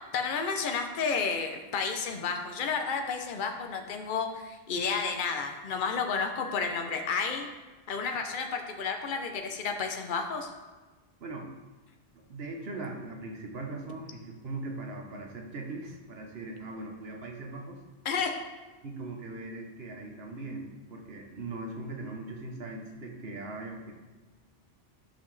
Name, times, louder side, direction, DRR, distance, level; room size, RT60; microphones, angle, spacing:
voice 1, 0.1-7.5 7.9-10.5 18.0-18.3, left 5 dB, 55° left, 4 dB, 0.9 m, -31 dB
voice 2, 12.3-17.8 18.8-23.9, right 2 dB, 65° right, 1 dB, 1.3 m, -40 dB
10.5 x 5.8 x 3.2 m, 1.2 s
omnidirectional pair, 1.1 m